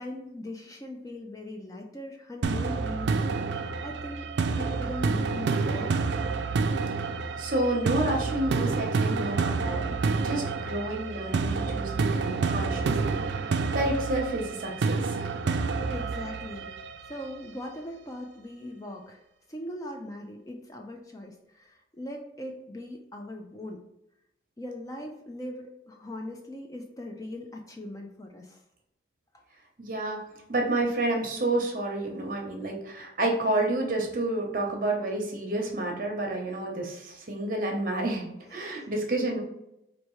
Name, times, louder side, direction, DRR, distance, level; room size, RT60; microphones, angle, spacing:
voice 1, 0.0-4.3 4.5-5.9 15.9-19.2 19.5-23.8 24.6-28.6 29.3-29.4 38.5-38.9, left 1 dB, 20° left, 2 dB, 0.4 m, -40 dB
sound 1, 2.4-17.4, right 4 dB, 75° right, 0.3 m, -28 dB
voice 2, 7.4-15.3 29.8-30.2 30.5-39.4, right 2 dB, 50° right, 1 dB, 0.8 m, -30 dB
4.4 x 2.6 x 3.1 m, 0.85 s
head